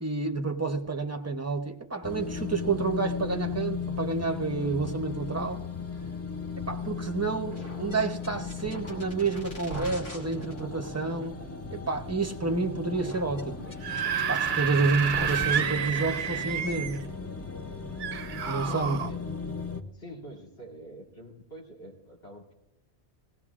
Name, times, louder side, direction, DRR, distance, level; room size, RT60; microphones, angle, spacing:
voice 1, 0.0-5.6 6.7-11.4 11.7-13.6 14.3-17.0 18.5-19.1, right 3 dB, 15° right, 5 dB, 0.7 m, -29 dB
sound 1, 2.0-19.8, left 5 dB, 20° left, 0.4 m, -37 dB
sound 2, 7.2-16.5, right 1 dB, 50° left, 2.0 m, -43 dB
Screaming / Screech, 13.7-17.0 18.0-19.1, right 8 dB, 55° right, 0.7 m, -30 dB
voice 2, 18.3-19.2 19.9-22.5, right 1 dB, 70° left, -3 dB, 2.9 m, -46 dB
20.0 x 16.5 x 2.4 m, 0.91 s
omnidirectional pair, 1.1 m